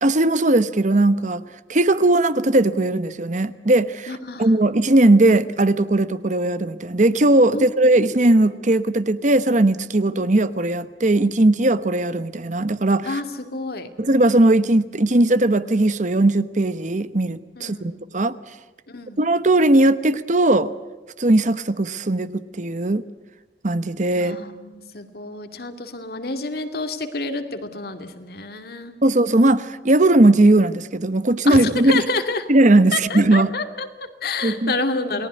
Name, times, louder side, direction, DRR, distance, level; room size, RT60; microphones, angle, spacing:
voice 1, 0.0-1.4 1.7-4.1 4.4-13.2 14.0-18.4 19.2-20.7 21.2-23.0 23.6-24.4 29.0-32.0 32.5-33.5 34.4-34.7, right 2 dB, 45° right, 1.0 m, -18 dB
voice 2, 4.1-4.5 7.5-7.7 10.0-10.2 13.0-13.9 17.6-18.0 18.9-19.3 24.2-29.0 31.4-32.5 32.9-35.3, left 3 dB, 60° left, 2.5 m, -29 dB
29.0 x 19.5 x 9.6 m
head